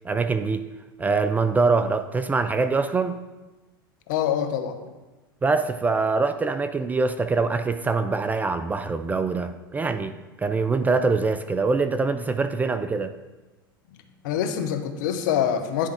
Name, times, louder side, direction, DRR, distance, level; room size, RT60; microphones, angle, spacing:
voice 1, 0.0-0.7 1.0-3.2 5.4-13.1, right 4 dB, 15° right, 10 dB, 0.3 m, -24 dB
voice 2, 4.1-4.8 14.2-15.9, left 9 dB, 60° left, 7 dB, 0.8 m, -25 dB
9.9 x 3.5 x 5.0 m, 1.2 s
figure-of-eight pair, 85°, 12 cm